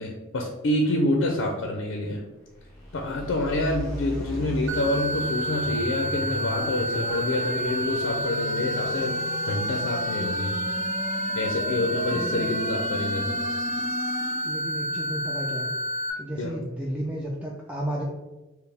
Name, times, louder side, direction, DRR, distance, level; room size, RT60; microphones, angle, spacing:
voice 1, 0.0-2.2 2.9-9.2 9.5-10.6 11.3-13.3 16.4-16.5, left 1 dB, 65° left, 1 dB, 0.4 m, -27 dB
sound 1, 2.4-14.7, equal, 20° left, 1.3 m, -36 dB
sound 2, 4.7-16.1, equal, 60° right, 0.6 m, -29 dB
voice 2, 12.1-12.5 14.4-15.7 16.2-18.0, right 1 dB, 5° right, -3 dB, 0.3 m, -33 dB
4.4 x 2.0 x 3.3 m, 1.1 s
head